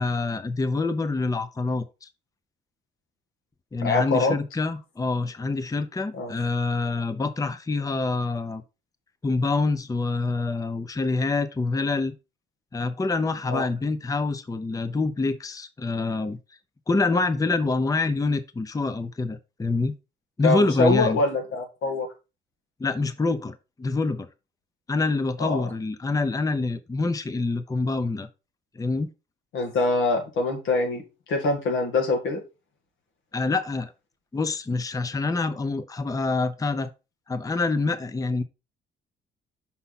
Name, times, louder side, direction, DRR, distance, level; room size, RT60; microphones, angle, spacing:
voice 1, 0.0-2.1 3.7-8.6 9.2-12.1 12.7-16.4 16.9-19.9 20.4-21.2 22.8-24.3 24.9-28.3 28.7-29.1 33.3-33.9 34.3-36.9 37.3-38.4, left 3 dB, 15° left, 0.7 m, -26 dB
voice 2, 3.8-4.3 6.1-6.3 13.5-13.6 20.4-22.1 25.4-25.6 29.5-31.0 31.3-32.4, left 3 dB, 85° left, 2.2 m, -24 dB
5.6 x 5.5 x 4.1 m
cardioid pair, 90°, 20 cm